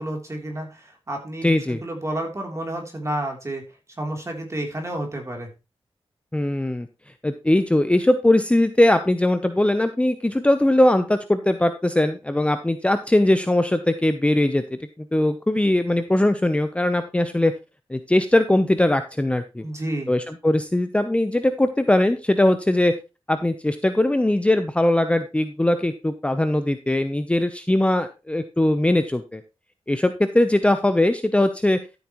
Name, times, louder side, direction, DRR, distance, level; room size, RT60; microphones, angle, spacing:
voice 1, 0.0-3.6 4.0-5.5 19.6-20.1, right 1 dB, 30° right, 2 dB, 3.2 m, -30 dB
voice 2, 1.4-1.8 6.3-6.9 7.2-17.5 17.9-19.6 20.1-22.9 23.3-29.4 29.9-31.8, left 1 dB, 10° left, 9 dB, 0.7 m, -20 dB
13.0 x 8.0 x 3.0 m, 0.28 s
wide cardioid pair, 105°, 10 cm